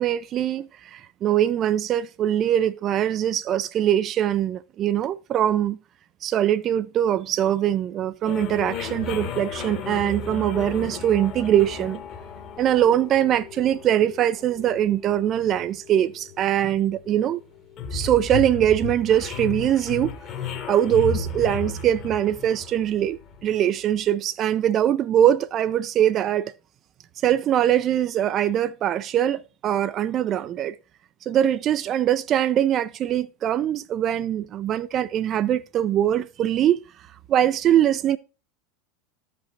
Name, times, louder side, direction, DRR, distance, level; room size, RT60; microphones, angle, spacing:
voice 1, 0.0-5.8 6.2-12.0 12.6-17.4 17.9-20.2 20.7-26.5 27.2-30.8 31.3-36.8 37.3-38.2, right 11 dB, 35° right, 0.4 m, -22 dB
sound 1, 8.2-23.7, left 5 dB, 40° left, 1.6 m, -34 dB
14.0 x 5.3 x 2.7 m
figure-of-eight pair, 80°, 0 cm